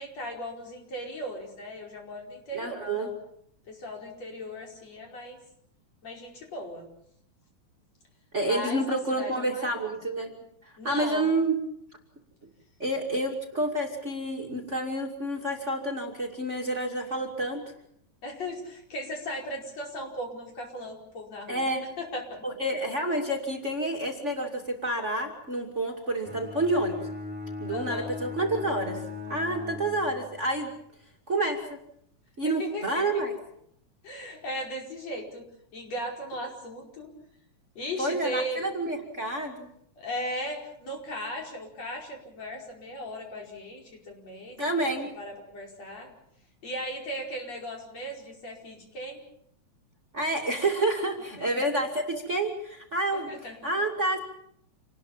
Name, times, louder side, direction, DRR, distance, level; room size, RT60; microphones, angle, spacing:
voice 1, 0.0-3.2 3.7-5.4 6.0-6.9 8.4-9.9 10.8-11.3 18.2-21.7 22.0-22.4 27.7-28.1 32.4-33.1 34.0-35.4 35.7-37.1 37.8-38.7 40.0-44.6 45.2-46.1 46.6-49.2 51.4-51.6 53.1-53.6, equal, 60° left, 1 dB, 6.2 m, -37 dB
voice 2, 2.5-3.1 8.3-10.3 10.6-11.6 12.8-17.6 21.5-21.8 22.4-27.0 27.6-29.0 29.3-30.7 31.3-31.6 32.4-33.4 38.0-39.7 44.6-45.1 50.1-53.3 53.6-54.2, right 1 dB, 25° right, 3 dB, 2.6 m, -29 dB
Bowed string instrument, 26.2-30.5, left 4 dB, 5° right, 6.0 m, -38 dB
27.5 x 19.5 x 7.3 m, 0.69 s
omnidirectional pair, 3.3 m